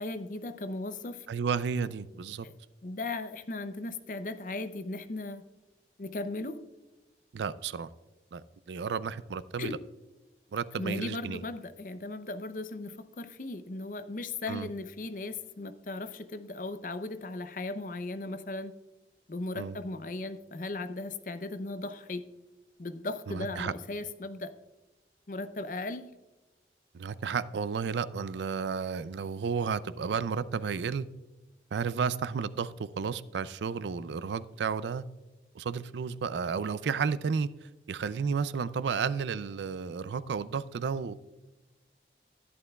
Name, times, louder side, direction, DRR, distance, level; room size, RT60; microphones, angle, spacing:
voice 1, 0.0-1.3 2.4-2.5 2.8-5.4 6.0-6.6 9.6-9.8 10.7-18.7 19.3-22.2 22.8-24.5 25.3-26.1, left 2 dB, 50° left, 10 dB, 0.6 m, -37 dB
voice 2, 1.3-2.5 7.3-7.9 8.3-9.7 10.5-11.4 14.5-14.7 19.6-19.8 23.3-23.7 26.9-31.1 31.7-35.0 35.5-41.1, right 6 dB, 85° right, 17 dB, 0.4 m, -32 dB
11.0 x 11.0 x 2.3 m, 1.1 s
head